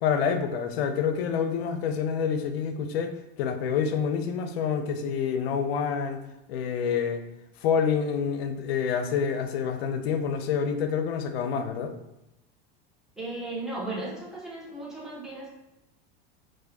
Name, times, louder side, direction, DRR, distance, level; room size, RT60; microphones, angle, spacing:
voice 1, 0.0-6.2 6.5-7.2 7.6-11.9, left 6 dB, 80° left, 8 dB, 0.5 m, -27 dB
voice 2, 13.2-15.5, right 2 dB, ahead, -6 dB, 1.1 m, -36 dB
4.0 x 2.5 x 2.7 m, 0.90 s
supercardioid pair, 110°, 30 cm